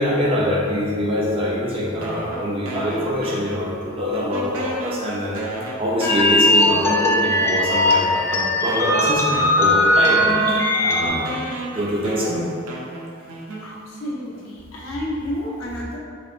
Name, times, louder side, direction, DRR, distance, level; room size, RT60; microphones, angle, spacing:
voice 1, 0.0-5.4 5.8-10.3 10.8-11.2 11.7-12.4, equal, 25° right, -5 dB, 0.6 m, -24 dB
sound 1, 2.0-3.9 4.1-7.4 8.1-8.2 8.7-14.1, right 1 dB, 90° right, 0.6 m, -34 dB
sound 2, 6.0-11.1, left 1 dB, 10° left, 0.4 m, -19 dB
voice 2, 13.6-16.0, left 1 dB, 75° left, -4 dB, 0.7 m, -30 dB
3.9 x 3.4 x 2.5 m, 2.3 s
head